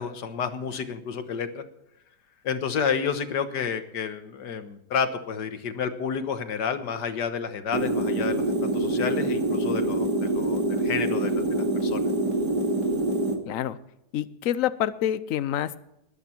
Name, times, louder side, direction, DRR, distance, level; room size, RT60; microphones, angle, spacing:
voice 1, 0.0-1.6 2.4-12.0, left 6 dB, 75° left, 8 dB, 1.9 m, -30 dB
sound 1, 7.7-13.3, right 2 dB, 70° right, 3.1 m, -25 dB
voice 2, 13.5-13.8 14.1-15.8, left 11 dB, 60° left, 14 dB, 1.0 m, -27 dB
21.0 x 9.3 x 4.5 m, 0.83 s
omnidirectional pair, 1.8 m